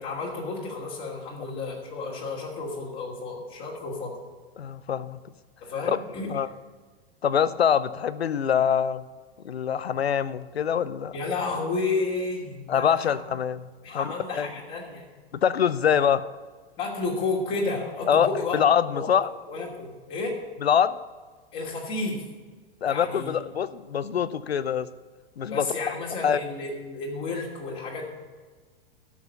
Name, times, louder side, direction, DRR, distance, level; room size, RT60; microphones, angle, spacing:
voice 1, 0.0-4.2 5.6-6.3 11.1-13.2 13.8-15.1 16.8-18.6 18.9-19.1 19.5-20.3 21.5-22.2 22.8-23.4 25.5-28.0, left 3 dB, 40° left, -3 dB, 2.6 m, -31 dB
voice 2, 4.6-5.2 5.9-6.0 6.3-6.5 7.2-9.0 9.4-11.1 12.7-14.5 15.3-16.2 18.1-19.3 20.6-21.0 22.8-24.9 25.4-25.7 26.2-26.4, left 8 dB, 85° left, 16 dB, 0.6 m, -24 dB
13.5 x 5.9 x 7.0 m, 1.4 s
figure-of-eight pair, 100°, 30 cm